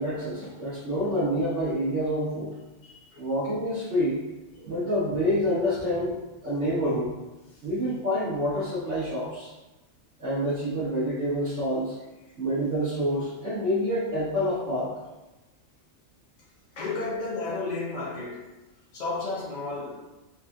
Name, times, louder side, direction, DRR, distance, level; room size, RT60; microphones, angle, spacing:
voice 1, 0.0-2.5 3.2-4.2 4.6-6.2 6.4-7.1 7.6-9.5 10.2-11.9 12.4-15.0, equal, 60° right, -13 dB, 1.7 m, -27 dB
voice 2, 2.8-3.2 16.8-18.5 18.9-20.0, left 3 dB, 50° left, -4 dB, 0.5 m, -32 dB
5.4 x 3.2 x 2.7 m, 1.1 s
omnidirectional pair, 1.4 m